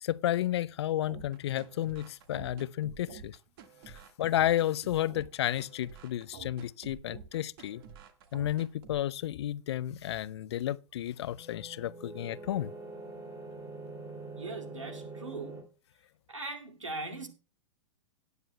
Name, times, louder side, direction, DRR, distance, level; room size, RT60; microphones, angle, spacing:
voice 1, 0.0-3.4 3.9-7.8 8.3-12.7, left 12 dB, 60° left, 0.5 m, -32 dB
sound 1, 1.1-9.1, right 7 dB, 50° right, 1.7 m, -49 dB
sound 2, 11.2-15.6, right 3 dB, 15° right, 3.0 m, -44 dB
voice 2, 14.3-15.6 16.3-17.3, right 2 dB, 85° right, 2.3 m, -40 dB
17.5 x 9.6 x 2.2 m
figure-of-eight pair, 105°, 16 cm